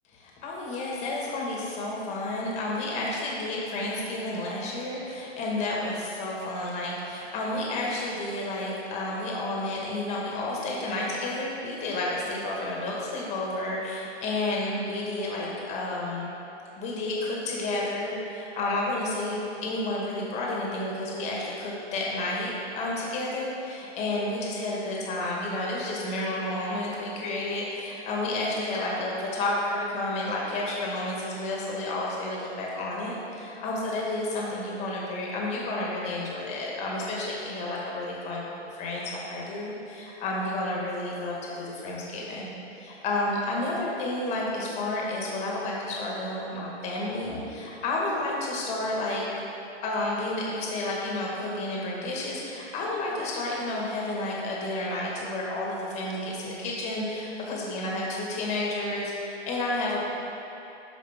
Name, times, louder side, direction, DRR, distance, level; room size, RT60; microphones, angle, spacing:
voice 1, 0.2-16.3 16.7-42.5 42.8-49.2 49.8-60.0, left 2 dB, 20° left, -3 dB, 1.3 m, -31 dB
12.5 x 5.0 x 3.5 m, 2.9 s
hypercardioid pair, 155°, 33 cm